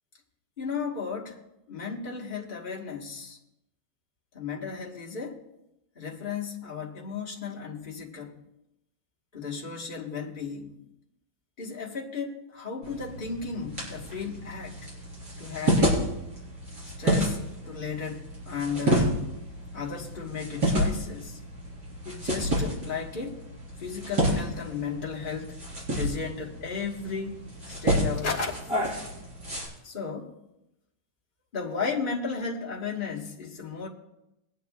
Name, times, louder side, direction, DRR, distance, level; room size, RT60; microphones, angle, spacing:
voice 1, 0.6-1.4 1.7-3.4 4.3-5.4 5.9-8.4 9.3-10.8 11.6-14.9 15.4-16.0 17.0-17.4 17.6-19.3 19.7-21.4 22.0-23.4 23.8-25.6 25.9-28.7 29.8-30.3 31.5-33.9, left 5 dB, 40° left, -3 dB, 0.7 m, -34 dB
sound 1, 12.8-29.7, equal, 35° right, 4.8 m, -30 dB
22.0 x 10.0 x 2.4 m, 0.91 s
omnidirectional pair, 3.3 m